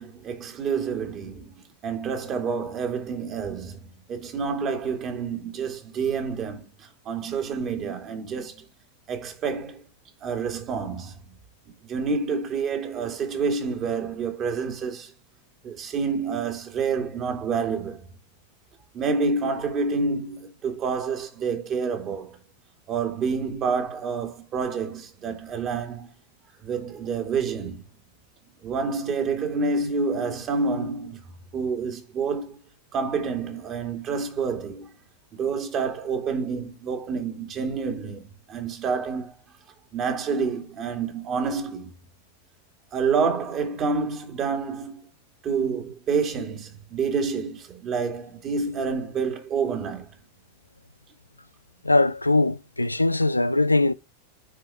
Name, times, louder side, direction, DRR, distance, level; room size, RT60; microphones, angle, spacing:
voice 1, 0.0-1.5 1.8-8.7 9.1-9.8 10.2-11.1 11.8-15.1 15.6-18.1 18.9-22.4 22.9-26.1 26.6-27.8 28.6-31.2 31.5-32.6 32.9-34.9 35.3-39.4 39.9-41.9 42.9-45.0 45.4-50.1, right 5 dB, 30° right, 2.5 m, -28 dB
voice 2, 51.8-53.9, left 2 dB, 85° left, 0.4 m, -21 dB
9.7 x 4.9 x 4.8 m
figure-of-eight pair, 90°, 0 cm